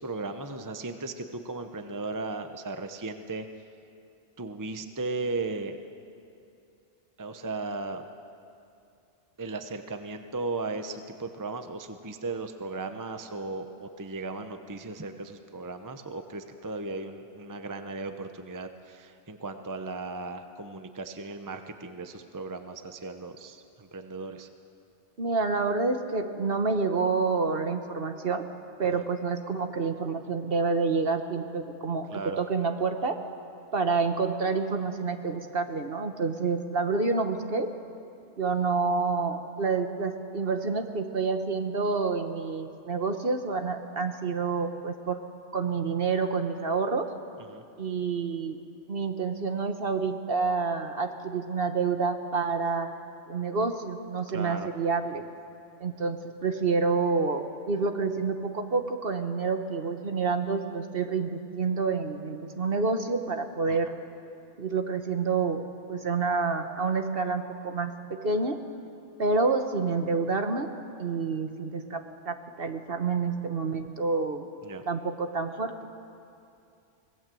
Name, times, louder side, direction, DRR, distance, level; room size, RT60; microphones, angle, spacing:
voice 1, 0.0-3.5 4.4-5.8 7.2-8.0 9.4-24.5 28.8-29.0 32.1-32.4 47.5-47.6 54.3-54.7 63.7-63.8 74.6-74.8, right 3 dB, 20° right, 7 dB, 0.8 m, -36 dB
voice 2, 25.2-28.4 28.8-32.1 32.4-33.2 33.7-37.7 38.4-45.2 45.5-47.1 47.8-48.6 48.9-52.9 53.3-55.2 55.8-63.9 64.6-67.9 68.2-68.6 69.2-70.7 71.0-74.5 74.9-75.7, right 4 dB, 50° right, 6 dB, 1.5 m, -28 dB
25.0 x 19.0 x 7.8 m, 2.6 s
omnidirectional pair, 1.2 m